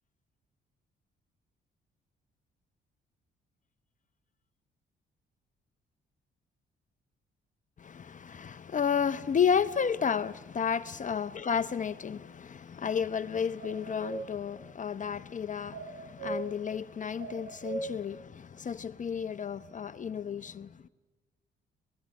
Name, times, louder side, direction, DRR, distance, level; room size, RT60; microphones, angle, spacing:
voice 1, 7.8-20.7, left 7 dB, 40° left, 0.8 m, -32 dB
sound 1, 13.6-14.2 15.7-16.4 17.2-17.9, right 4 dB, 85° right, 6.3 m, -37 dB
24.5 x 19.0 x 9.5 m
cardioid pair, 90°, 20 cm